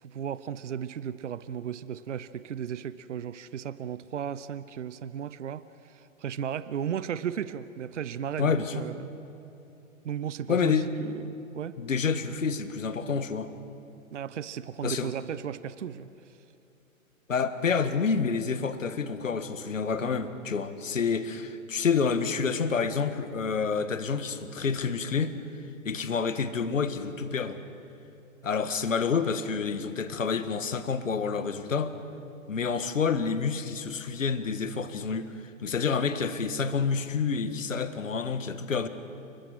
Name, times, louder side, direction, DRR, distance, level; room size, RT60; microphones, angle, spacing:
voice 1, 0.0-9.1 10.0-11.8 14.1-16.4, right 8 dB, 60° right, 16 dB, 0.8 m, -35 dB
voice 2, 8.4-8.8 10.5-10.9 11.8-13.5 14.8-15.1 17.3-25.3 25.9-27.6 28.4-32.0 32.5-35.3 35.6-38.9, left 5 dB, 70° left, 11 dB, 1.7 m, -28 dB
30.0 x 21.5 x 6.3 m, 2.9 s
figure-of-eight pair, 115°, 40 cm